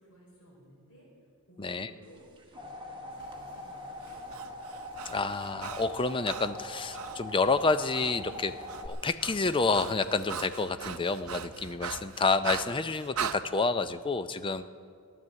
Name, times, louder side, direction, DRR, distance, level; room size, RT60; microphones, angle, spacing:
voice 1, 0.0-4.7, right 1 dB, 85° left, -3 dB, 4.8 m, -56 dB
voice 2, 1.6-1.9 5.1-8.5 8.8-14.7, left 3 dB, 25° left, 11 dB, 0.5 m, -29 dB
sound 1, 2.2-8.9, left 1 dB, 20° right, 1.4 m, -42 dB
sound 2, 3.1-12.3, equal, 45° left, 4.9 m, -57 dB
Breathing, 4.0-7.2 7.9-8.1 8.4-13.4, right 7 dB, 70° right, 0.6 m, -40 dB
14.5 x 11.0 x 7.6 m, 2.3 s
head